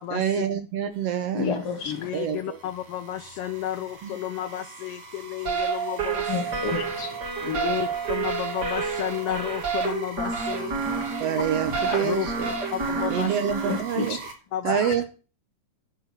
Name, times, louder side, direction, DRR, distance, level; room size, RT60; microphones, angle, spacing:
voice 1, 0.1-1.5 2.1-2.6 4.0-4.1 7.4-7.8 10.9-12.5 13.1-14.2 14.6-15.0, right 8 dB, 70° right, 1.6 m, -27 dB
sound 1, 0.9-14.3, right 3 dB, 55° right, 3.2 m, -43 dB
voice 2, 1.3-2.1 6.3-7.2 11.7-12.0 13.7-14.2 14.7-14.9, left 5 dB, 50° left, 2.4 m, -30 dB
voice 3, 1.8-6.5 7.4-11.0 12.0-12.3 12.7-13.4 14.5-14.8, left 12 dB, 75° left, 1.3 m, -32 dB
sound 2, 5.5-13.8, right 5 dB, 35° right, 2.9 m, -29 dB
11.5 x 6.2 x 7.5 m
omnidirectional pair, 3.4 m